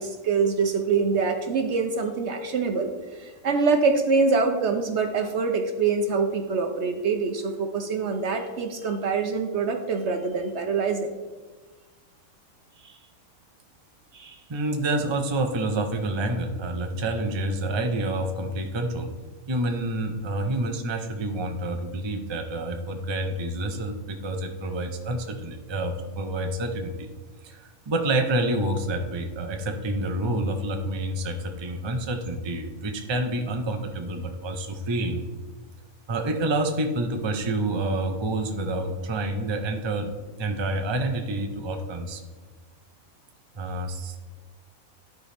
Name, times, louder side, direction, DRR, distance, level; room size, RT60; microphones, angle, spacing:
voice 1, 0.0-11.1 12.8-12.9 14.1-14.4, right 4 dB, 60° right, 5 dB, 0.8 m, -25 dB
voice 2, 14.5-19.1 19.5-27.1 27.4-35.2 36.1-40.1 40.4-42.2 43.6-44.1, right 1 dB, 30° right, 4 dB, 0.5 m, -28 dB
12.5 x 4.7 x 3.4 m, 1.3 s
omnidirectional pair, 1.5 m